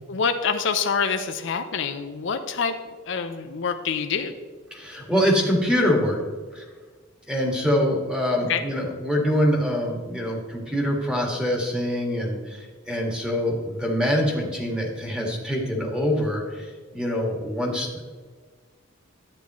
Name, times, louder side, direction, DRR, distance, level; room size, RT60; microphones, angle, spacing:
voice 1, 0.0-2.8 3.1-4.3 8.5-8.6, left 6 dB, 65° left, 8 dB, 0.6 m, -26 dB
voice 2, 4.7-6.2 6.5-6.6 7.3-18.0, equal, 5° right, -1 dB, 1.7 m, -24 dB
10.5 x 8.7 x 3.0 m, 1.5 s
head